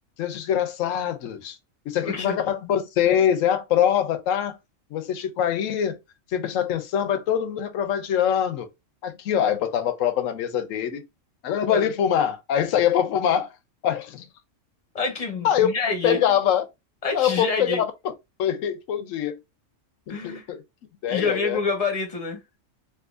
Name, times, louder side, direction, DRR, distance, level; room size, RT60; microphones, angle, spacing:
voice 1, 0.2-1.6 1.9-4.6 4.9-6.0 6.3-8.7 9.0-11.0 11.4-13.5 13.8-14.3 15.4-15.7 16.0-16.6 17.1-17.9 18.4-19.4 20.1-20.6 21.0-21.6, left 9 dB, 85° left, 1.0 m, -23 dB
voice 2, 2.0-2.4 11.7-11.9 14.9-16.2 17.0-17.8 20.1-20.5 21.1-22.4, left 3 dB, 35° left, 0.8 m, -27 dB
3.6 x 2.7 x 2.4 m
omnidirectional pair, 1.3 m